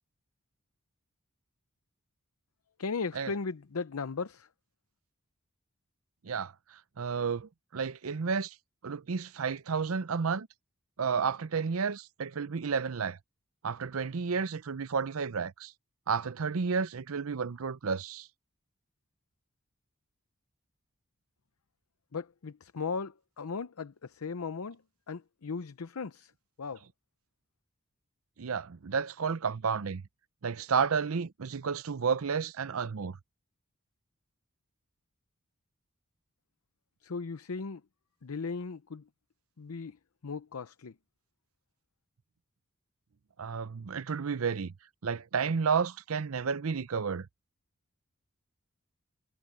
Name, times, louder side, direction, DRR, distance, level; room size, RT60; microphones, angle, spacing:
voice 1, 2.8-4.5 22.1-24.8 25.1-26.3 26.6-26.8 37.0-37.8 38.2-39.0 39.6-40.0 40.2-40.9, left 4 dB, 85° left, 0.7 m, -37 dB
voice 2, 7.0-8.5 8.8-10.5 11.0-13.2 13.6-15.7 16.1-18.3 28.4-30.0 30.4-33.2 43.4-44.7 45.0-47.3, right 5 dB, 75° right, 0.6 m, -31 dB
head